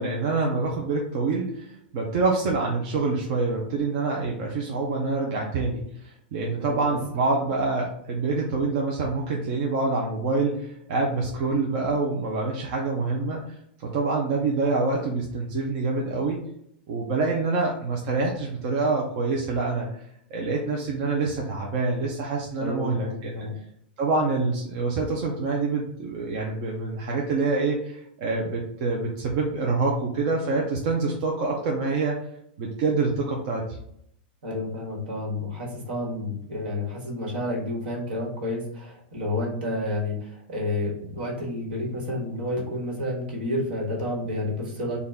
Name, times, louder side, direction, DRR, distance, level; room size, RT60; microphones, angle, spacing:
voice 1, 0.0-5.8 6.3-13.6 13.8-16.4 16.9-19.9 20.3-23.4 24.0-32.2 32.6-33.6, right 3 dB, 35° right, -1 dB, 0.5 m, -26 dB
voice 2, 22.6-23.5 34.4-45.0, left 1 dB, 65° right, -1 dB, 1.4 m, -30 dB
3.8 x 2.2 x 3.4 m, 0.71 s
supercardioid pair, 175°, 6 cm